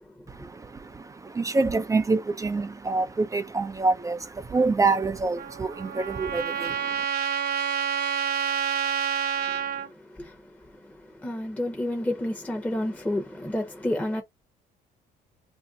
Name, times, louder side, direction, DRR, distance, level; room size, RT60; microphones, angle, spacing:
voice 1, 0.3-7.0, right 3 dB, 20° right, 0.5 m, -26 dB
Trumpet, 5.4-9.9, right 8 dB, 60° right, 1.0 m, -28 dB
voice 2, 9.4-14.2, left 1 dB, 10° left, 0.9 m, -31 dB
2.6 x 2.1 x 3.5 m
cardioid pair, 110°, 17 cm